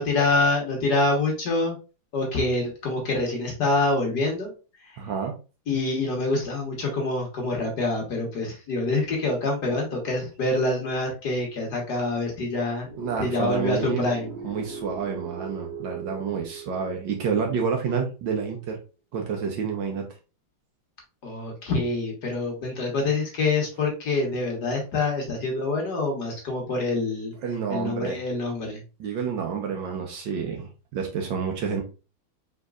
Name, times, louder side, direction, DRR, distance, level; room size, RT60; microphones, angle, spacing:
voice 1, 0.0-1.8 2.1-4.5 4.8-5.0 5.7-12.9 13.2-14.3 21.2-27.3 27.7-28.8, left 2 dB, 55° left, 0 dB, 1.6 m, -26 dB
voice 2, 5.0-5.4 13.0-14.1 14.4-18.8 19.1-20.1 27.4-28.2 29.0-31.8, right 6 dB, 65° right, 3 dB, 1.4 m, -29 dB
sound 1, 12.8-17.9, right 6 dB, 15° right, 0.8 m, -40 dB
4.4 x 3.9 x 2.4 m, 0.32 s
omnidirectional pair, 2.4 m